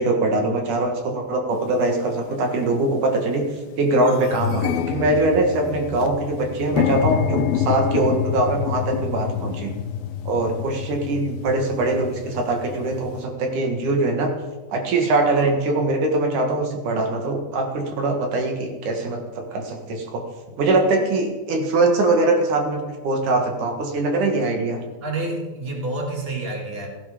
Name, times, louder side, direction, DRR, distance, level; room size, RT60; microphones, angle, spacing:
voice 1, 0.0-3.4 3.8-9.8 10.2-14.3 14.7-20.2 20.6-24.8, right 2 dB, 55° right, 3 dB, 2.8 m, -22 dB
sound 1, 1.7-1.8 2.5-2.8 3.2-3.3 3.5-13.2, left 9 dB, 75° left, 2.3 m, -27 dB
voice 2, 25.0-26.9, right 2 dB, 20° right, 1 dB, 1.6 m, -28 dB
16.0 x 15.5 x 5.1 m, 1.2 s
omnidirectional pair, 5.0 m